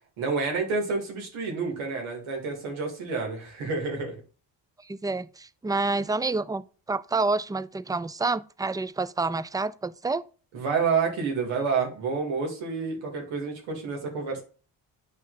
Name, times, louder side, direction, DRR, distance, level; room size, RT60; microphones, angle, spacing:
voice 1, 0.2-4.1 10.5-14.4, right 5 dB, 90° right, 2.4 m, -29 dB
voice 2, 4.8-10.2, right 3 dB, 10° right, 0.4 m, -28 dB
9.2 x 3.1 x 4.0 m
supercardioid pair, 60°, 47 cm